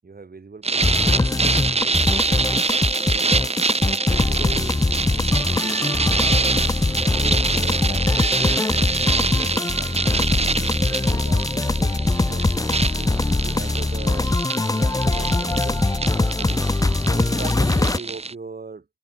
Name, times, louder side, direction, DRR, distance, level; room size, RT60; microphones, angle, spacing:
voice 1, 0.0-3.5 4.1-4.8 5.4-12.5 12.9-14.3 14.7-15.8 16.2-16.6 17.1-18.9, right 4 dB, 60° right, 2.4 m, -40 dB
sound 1, 0.6-18.3, right 3 dB, 35° right, 0.8 m, -25 dB
sound 2, 0.8-18.0, left 2 dB, 20° left, 0.6 m, -22 dB
cardioid pair, 50°, 18 cm